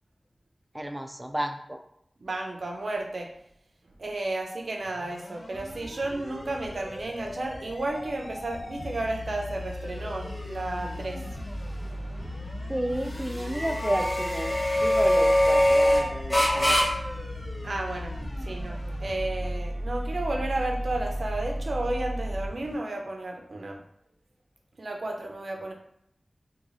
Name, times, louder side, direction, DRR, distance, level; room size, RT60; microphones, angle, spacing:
voice 1, 0.7-1.8 12.7-16.8, right 1 dB, 15° right, 5 dB, 0.3 m, -31 dB
voice 2, 2.2-3.3 4.0-11.2 17.6-23.8 24.8-25.7, right 2 dB, 70° right, 2 dB, 0.5 m, -33 dB
sound 1, 4.8-19.3, left 1 dB, 60° left, 0.8 m, -44 dB
sound 2, 5.5-22.7, equal, 20° left, 1.3 m, -28 dB
sound 3, 8.8-22.5, equal, 85° left, 1.1 m, -36 dB
3.8 x 2.3 x 3.0 m, 0.73 s
wide cardioid pair, 75°, 0 cm